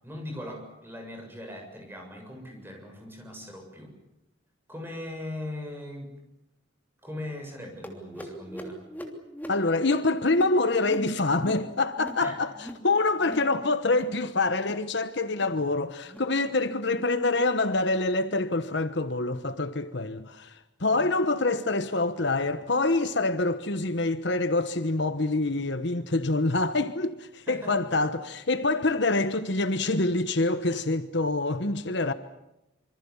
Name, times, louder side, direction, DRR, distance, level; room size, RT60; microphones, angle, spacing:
voice 1, 0.0-3.9 4.7-6.1 7.0-8.8 12.2-12.3 20.9-21.1 27.5-27.7, left 1 dB, 10° right, 7.5 m, -39 dB
sound 1, 7.8-12.9 13.1-13.5 13.8-14.2 14.5-14.9 15.2-15.6 16.0-16.3 16.8-17.1 17.6-17.8 18.4-18.6 19.3-19.4 20.1-20.2 21.0-21.1, equal, 10° left, 3.0 m, -42 dB
voice 2, 9.5-32.1, left 2 dB, 55° left, 1.2 m, -26 dB
27.0 x 25.0 x 7.2 m
head